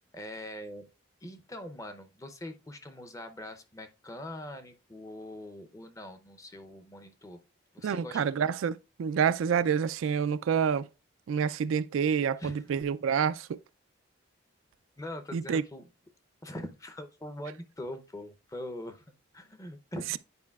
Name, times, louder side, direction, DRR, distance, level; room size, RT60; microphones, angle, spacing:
voice 1, 0.1-0.9 1.2-7.4 7.7-8.2 12.4-12.6 15.0-15.8 16.4-20.2, left 1 dB, 15° left, 0.6 m, -42 dB
voice 2, 7.8-10.9 11.3-13.6 15.3-15.6 20.1-20.2, right 7 dB, 85° right, 0.3 m, -28 dB
9.5 x 4.8 x 2.3 m
head